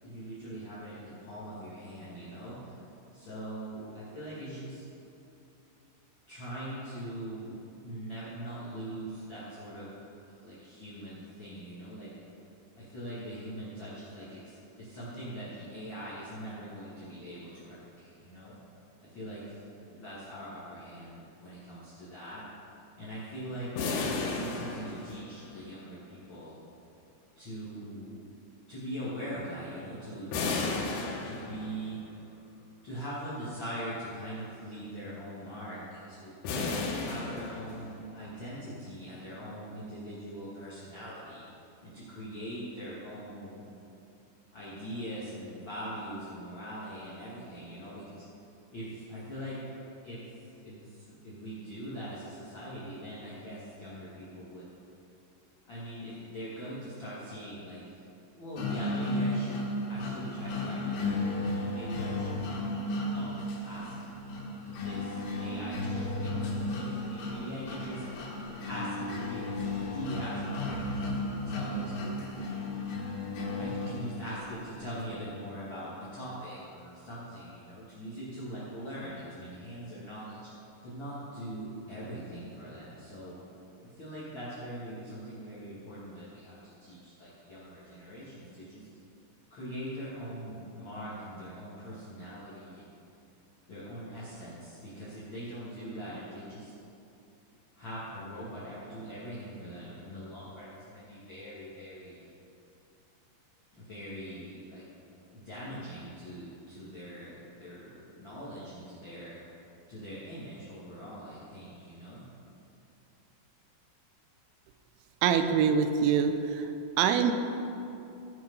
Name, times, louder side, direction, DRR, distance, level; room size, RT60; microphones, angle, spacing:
voice 1, 0.0-2.8 3.1-4.9 6.3-7.6 7.8-9.9 10.2-12.3 12.8-18.6 19.0-22.4 23.0-23.7 24.2-26.5 27.4-28.3 28.7-30.8 31.2-32.0 32.8-36.3 37.0-41.5 41.8-43.6 44.5-48.2 48.7-49.6 50.0-54.6 55.6-58.0 58.4-62.4 63.0-68.0 68.7-71.1 71.4-72.2 73.6-80.5 80.8-83.4 83.8-88.9 89.5-93.0 93.7-96.7 97.7-102.3 103.7-104.8 105.3-109.4 109.9-112.2, equal, 45° left, -9 dB, 1.6 m, -42 dB
sound 1, 23.8-25.6 30.3-32.0 36.4-38.1, left 3 dB, 90° left, 3.9 m, -33 dB
sound 2, 58.6-74.5, left 2 dB, 75° left, 3.9 m, -34 dB
voice 2, 115.2-117.3, right 7 dB, 85° right, 8 dB, 3.1 m, -25 dB
16.0 x 6.2 x 5.5 m, 2.8 s
omnidirectional pair, 5.4 m